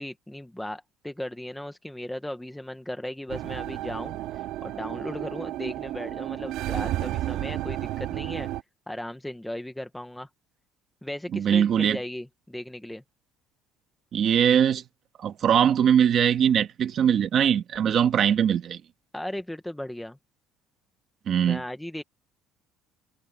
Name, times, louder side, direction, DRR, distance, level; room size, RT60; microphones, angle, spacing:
voice 1, 0.0-8.5 8.9-10.3 11.0-13.0 19.1-20.2 21.4-22.0, left 1 dB, 5° left, 0.9 m, -36 dB
sound 1, 3.3-8.6, right 14 dB, 60° right, 1.8 m, -32 dB
voice 2, 11.3-12.0 14.1-14.8 15.2-18.8 21.3-21.6, right 8 dB, 35° right, 1.9 m, -21 dB
cardioid pair, 175°, 0 cm